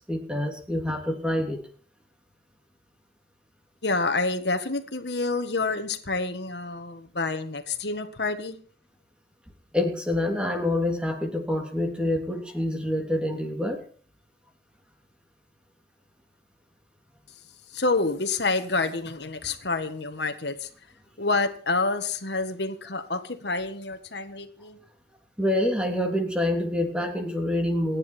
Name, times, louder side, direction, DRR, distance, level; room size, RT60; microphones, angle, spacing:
voice 1, 0.1-1.6 9.7-13.8 25.4-28.0, left 1 dB, 5° right, 3 dB, 3.0 m, -26 dB
voice 2, 3.8-8.6 17.7-20.7 21.2-24.8, left 3 dB, 75° left, 8 dB, 1.8 m, -28 dB
29.0 x 9.9 x 4.5 m, 0.43 s
head